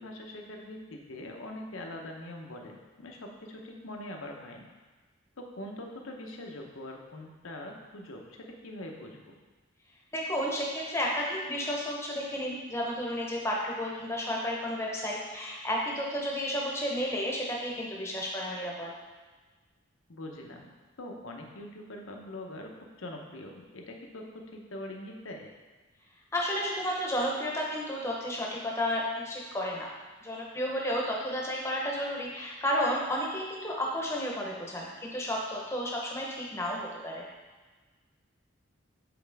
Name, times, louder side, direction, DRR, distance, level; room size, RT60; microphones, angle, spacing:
voice 1, 0.0-4.7 5.4-9.3 20.1-20.7 21.0-22.7 23.0-25.5, left 1 dB, 80° left, 1 dB, 0.9 m, -43 dB
voice 2, 10.1-18.9 26.3-29.9 30.2-37.3, equal, 15° left, -2 dB, 0.9 m, -32 dB
7.9 x 4.3 x 3.5 m, 1.3 s
head